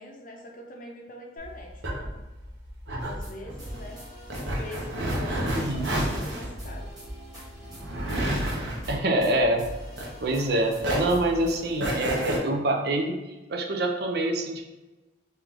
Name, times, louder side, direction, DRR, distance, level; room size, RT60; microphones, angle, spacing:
voice 1, 0.0-2.1 3.0-4.0 4.4-6.9, left 1 dB, 45° left, 1 dB, 0.7 m, -43 dB
sound 1, 1.4-10.5 10.8-12.4, right 1 dB, 75° right, 1.0 m, -30 dB
sound 2, 3.0-3.3 3.6-6.0 6.2-6.3 6.6-8.9 9.2-9.3 9.6-12.3, right 1 dB, 20° right, 1.4 m, -42 dB
voice 2, 5.5-5.9 8.9-9.7 10.2-13.1 13.5-14.7, right 1 dB, 55° right, 3 dB, 0.5 m, -26 dB
3.3 x 3.0 x 3.6 m, 1.1 s
head